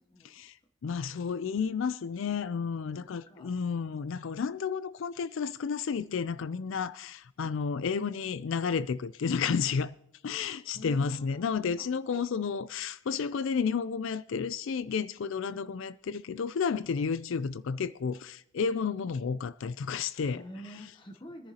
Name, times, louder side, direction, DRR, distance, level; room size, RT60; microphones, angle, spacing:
voice 1, 0.3-10.0 10.2-20.4, left 6 dB, 60° left, 0.4 m, -31 dB
voice 2, 2.9-3.5 10.7-12.2 20.1-21.5, equal, 20° left, 0.8 m, -48 dB
23.5 x 10.5 x 2.9 m
head